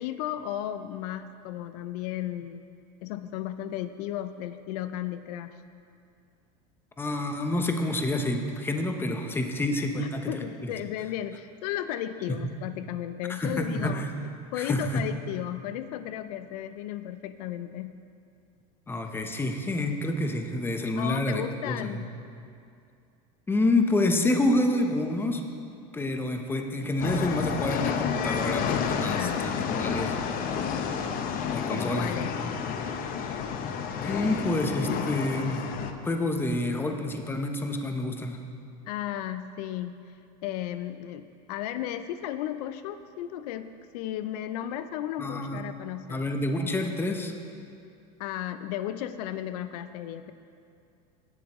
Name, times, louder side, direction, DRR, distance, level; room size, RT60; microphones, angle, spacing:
voice 1, 0.0-2.6 3.0-5.5 10.0-18.0 21.0-22.1 29.1-29.5 31.7-32.3 38.9-40.1 40.4-43.7 43.9-46.3 48.2-50.3, left 11 dB, 75° left, 11 dB, 0.5 m, -34 dB
voice 2, 7.0-10.7 13.3-14.1 14.6-15.0 18.9-22.0 23.5-25.5 25.9-30.2 30.7-30.8 31.5-32.2 34.0-35.6 36.0-38.4 45.2-45.6 46.1-47.3, left 1 dB, 10° left, 4 dB, 0.8 m, -28 dB
sound 1, 27.0-35.9, left 7 dB, 45° left, 0.7 m, -30 dB
17.5 x 7.1 x 3.0 m, 2.5 s
supercardioid pair, 120°, 20 cm